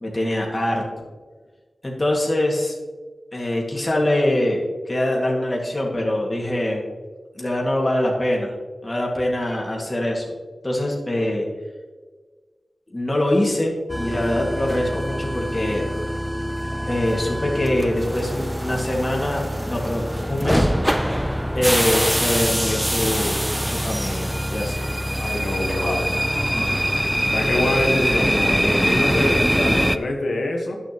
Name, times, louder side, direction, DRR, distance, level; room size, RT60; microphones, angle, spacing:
voice 1, 0.0-0.8 1.8-2.8 3.3-4.6 4.9-6.8 7.3-8.5 8.8-10.3 10.6-11.4 12.9-15.8 16.9-20.0 20.3-21.0 21.5-24.8 25.6-26.0 26.5-26.8, left 1 dB, 30° left, -2 dB, 2.0 m, -24 dB
sound 1, 13.9-30.0, equal, 5° right, 0.4 m, -23 dB
voice 2, 25.2-26.0 27.3-30.8, left 1 dB, 85° left, 1 dB, 1.3 m, -25 dB
11.0 x 6.7 x 3.0 m, 1.4 s
cardioid pair, 55°, 0 cm